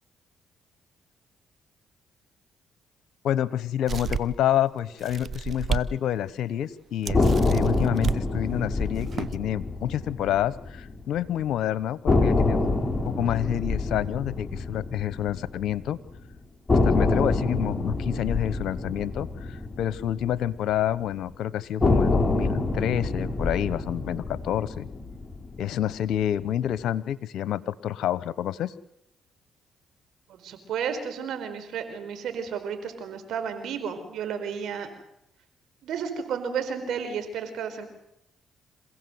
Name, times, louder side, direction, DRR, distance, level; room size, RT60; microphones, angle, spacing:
voice 1, 3.2-7.2 7.5-12.7 13.0-16.0 16.7-24.9 25.6-28.7, left 11 dB, 75° left, 18 dB, 1.0 m, -28 dB
sound 1, 3.9-4.5 5.0-5.9 6.3-6.4 7.1-8.2 8.9-9.4, right 6 dB, 55° right, 1.0 m, -31 dB
sound 2, 7.1-11.2 11.5-11.6 12.1-16.1 16.7-21.0 21.8-26.2, left 2 dB, 20° left, 4.5 m, -26 dB
voice 2, 30.3-34.9 35.8-37.9, right 7 dB, 75° right, 8 dB, 4.4 m, -32 dB
27.5 x 16.5 x 8.0 m, 0.80 s
supercardioid pair, 60°, 0 cm